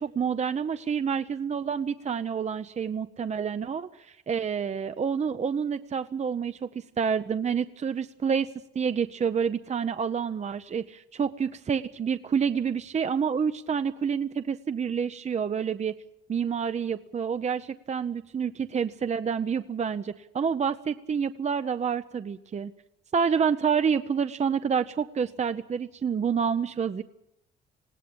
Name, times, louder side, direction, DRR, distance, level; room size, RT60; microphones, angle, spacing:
voice 1, 0.0-8.5 8.7-15.9 16.3-22.7 23.1-27.0, right 6 dB, 35° right, 11 dB, 0.7 m, -28 dB
20.0 x 17.0 x 8.7 m, 0.85 s
cardioid pair, 90°, 20 cm